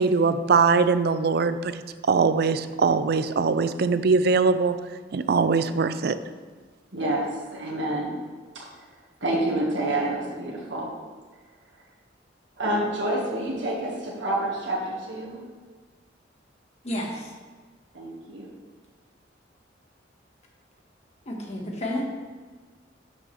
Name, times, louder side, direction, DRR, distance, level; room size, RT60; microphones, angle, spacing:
voice 1, 0.0-4.8 5.1-6.2, right 4 dB, 60° right, 12 dB, 0.4 m, -21 dB
voice 2, 6.9-8.1 8.5-8.8 9.2-10.9 12.6-15.4 17.9-18.5, right 1 dB, 75° right, -4 dB, 1.6 m, -28 dB
voice 3, 16.8-17.3 21.2-22.1, left 1 dB, 35° left, -1 dB, 1.5 m, -31 dB
12.0 x 6.3 x 3.3 m, 1.4 s
head